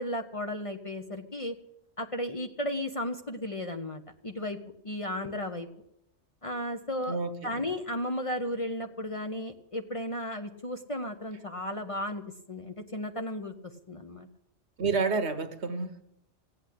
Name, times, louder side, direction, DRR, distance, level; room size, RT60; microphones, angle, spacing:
voice 1, 0.0-1.6 2.0-4.6 4.8-5.7 6.4-7.2 7.4-12.2 12.5-13.5 13.9-14.3, left 1 dB, 30° left, 6 dB, 0.8 m, -34 dB
voice 2, 7.1-7.6 14.8-16.0, right 4 dB, 65° right, 10 dB, 1.4 m, -29 dB
16.0 x 8.4 x 8.5 m, 0.78 s
omnidirectional pair, 1.2 m